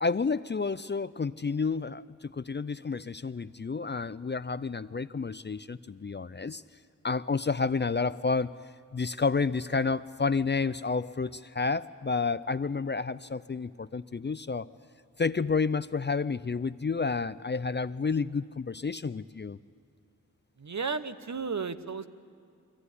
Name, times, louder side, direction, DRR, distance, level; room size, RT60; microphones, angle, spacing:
voice 1, 0.0-6.6 7.0-8.5 8.9-14.7 15.2-19.6, left 4 dB, 30° left, 15 dB, 0.4 m, -30 dB
voice 2, 20.6-22.1, right 5 dB, 55° right, 11 dB, 0.9 m, -33 dB
23.0 x 15.5 x 9.8 m, 2.4 s
wide cardioid pair, 50°, 34 cm